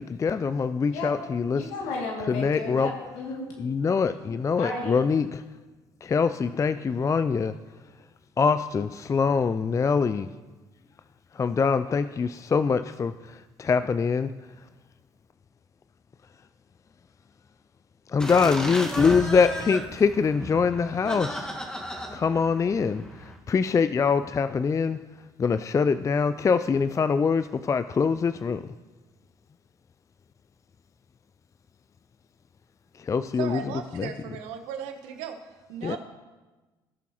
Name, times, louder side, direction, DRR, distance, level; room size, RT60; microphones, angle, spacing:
voice 1, 0.0-1.6 2.3-2.9 3.6-5.4 6.0-7.5 8.4-10.3 11.4-13.1 13.6-14.3 18.1-21.5 22.1-23.0 23.5-25.0 25.4-28.6 33.1-33.6 34.0-34.1 35.8-36.0, left 5 dB, 25° left, 12 dB, 0.3 m, -24 dB
voice 2, 1.5-3.5 4.6-5.0, left 3 dB, 75° left, -1 dB, 2.4 m, -33 dB
sound 1, 18.2-23.4, equal, 5° left, 1.6 m, -34 dB
voice 3, 33.3-36.0, right 8 dB, 75° right, 7 dB, 1.0 m, -36 dB
17.0 x 6.9 x 3.0 m, 1.2 s
hypercardioid pair, 55°, 12 cm